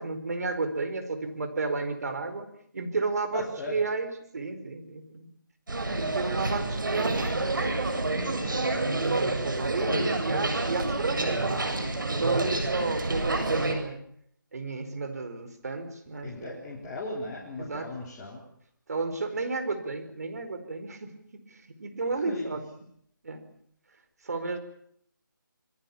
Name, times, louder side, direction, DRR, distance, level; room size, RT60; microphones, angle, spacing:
voice 1, 0.0-2.5 2.7-5.3 5.9-11.6 12.1-14.0 14.5-16.6 17.6-17.9 18.9-22.7 23.2-23.4 24.2-24.6, right 3 dB, 50° right, 8 dB, 4.7 m, -32 dB
voice 2, 3.3-3.8 9.9-10.3 16.2-18.4 22.1-22.5, left 2 dB, 15° left, -4 dB, 3.7 m, -37 dB
sound 1, 5.7-13.7, right 2 dB, 70° right, 7.5 m, -28 dB
26.5 x 23.0 x 7.2 m, 0.68 s
figure-of-eight pair, 165°, 11 cm